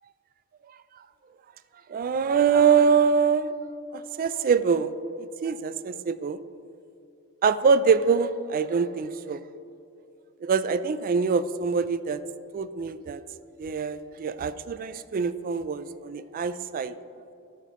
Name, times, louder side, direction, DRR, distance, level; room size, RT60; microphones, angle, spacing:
voice 1, 1.9-3.5 3.9-6.4 7.4-9.4 10.4-12.2 12.5-13.2 13.6-17.0, right 5 dB, 40° right, 13 dB, 0.3 m, -24 dB
13.5 x 5.9 x 3.1 m, 2.7 s
head